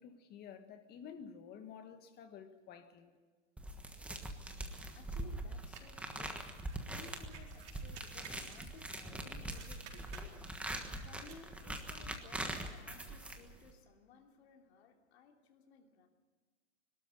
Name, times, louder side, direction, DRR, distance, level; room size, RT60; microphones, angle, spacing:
voice 1, 0.0-3.1, left 7 dB, 25° left, 1.7 m, -51 dB
sound 1, 3.6-13.7, right 1 dB, 5° right, 1.3 m, -43 dB
voice 2, 4.4-16.1, left 6 dB, 60° left, 3.0 m, -59 dB
sound 2, 5.7-9.2 9.4-11.4, right 7 dB, 70° right, 4.3 m, -57 dB
22.5 x 13.0 x 9.9 m
supercardioid pair, 150°, 36 cm